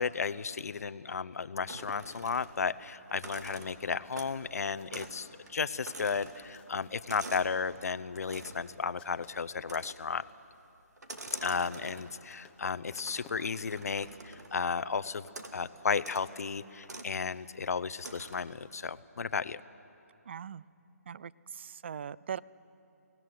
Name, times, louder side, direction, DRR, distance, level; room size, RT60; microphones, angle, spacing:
voice 1, 0.0-10.2 11.4-15.3 15.5-19.6, left 5 dB, 70° left, 14 dB, 0.8 m, -34 dB
sound 1, 1.4-10.0 10.6-10.7 10.9-11.0 11.2-11.3 11.6-16.0, left 7 dB, 10° left, 1.0 m, -61 dB
sound 2, 1.7-2.7 3.1-4.5 4.9-5.2 5.5-7.6 8.2-8.7 9.6-10.2 11.0-12.3 13.0-14.7 15.3-15.6 16.0-16.3 16.8-17.1 18.0-18.6, right 2 dB, 85° right, 2.4 m, -46 dB
voice 2, 20.3-20.6 21.1-22.4, right 8 dB, 45° right, 20 dB, 0.4 m, -40 dB
23.5 x 18.0 x 9.5 m, 2.7 s
hypercardioid pair, 160°, 9 cm